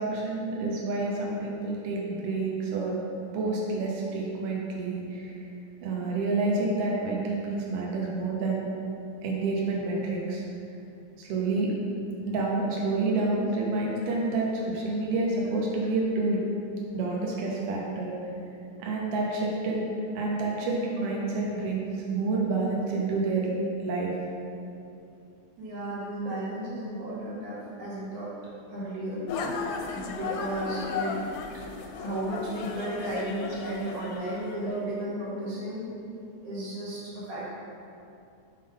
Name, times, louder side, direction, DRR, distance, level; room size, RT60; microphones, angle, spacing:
voice 1, 0.0-3.0 3.3-5.3 5.8-8.7 9.2-10.4 11.2-11.7 12.3-16.4 16.9-18.1 18.8-19.8 20.1-23.5 23.8-24.1, right 3 dB, 65° right, -3 dB, 1.7 m, -28 dB
voice 2, 25.6-28.3 28.7-29.2 29.9-31.2 32.0-35.9 36.4-37.5, right 1 dB, 85° right, -9 dB, 3.2 m, -34 dB
sound 1, 29.3-34.8, left 4 dB, 85° left, 2.0 m, -35 dB
5.5 x 3.8 x 5.2 m, 2.6 s
omnidirectional pair, 3.4 m